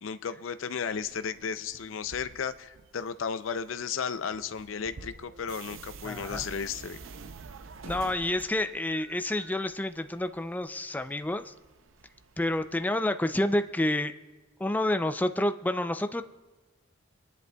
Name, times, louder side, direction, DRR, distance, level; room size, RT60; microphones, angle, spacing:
voice 1, 0.0-7.0, left 6 dB, 75° left, 12 dB, 0.5 m, -34 dB
sound 1, 0.9-12.8, right 4 dB, 90° right, 0.6 m, -49 dB
voice 2, 6.0-6.5 7.8-11.5 12.4-14.1 14.6-16.2, left 1 dB, 10° left, 9 dB, 0.4 m, -29 dB
26.0 x 10.5 x 2.3 m, 1.2 s
head